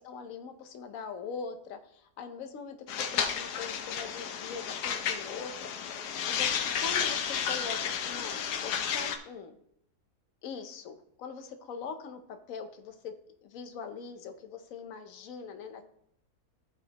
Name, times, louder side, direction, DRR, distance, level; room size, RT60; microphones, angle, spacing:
voice 1, 0.0-5.7 6.3-9.6 10.4-13.1 13.4-15.9, left 5 dB, 65° left, 7 dB, 1.2 m, -42 dB
sound 1, 2.9-9.2, left 8 dB, 90° left, 1.3 m, -32 dB
14.0 x 5.0 x 2.9 m, 0.71 s
omnidirectional pair, 1.7 m